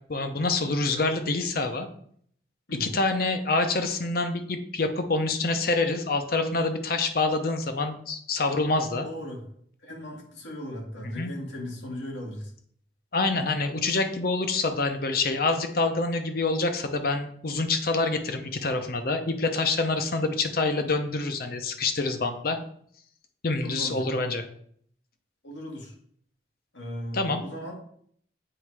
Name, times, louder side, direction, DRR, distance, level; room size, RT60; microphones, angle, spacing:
voice 1, 0.1-1.9 2.8-9.1 11.0-11.3 13.1-22.6 23.4-24.4 27.1-27.4, left 3 dB, 55° left, 7 dB, 0.7 m, -26 dB
voice 2, 9.0-9.4 9.8-12.5 23.6-24.3 25.4-25.9 26.7-27.8, equal, 90° left, 0 dB, 1.8 m, -37 dB
7.7 x 3.2 x 4.8 m, 0.63 s
head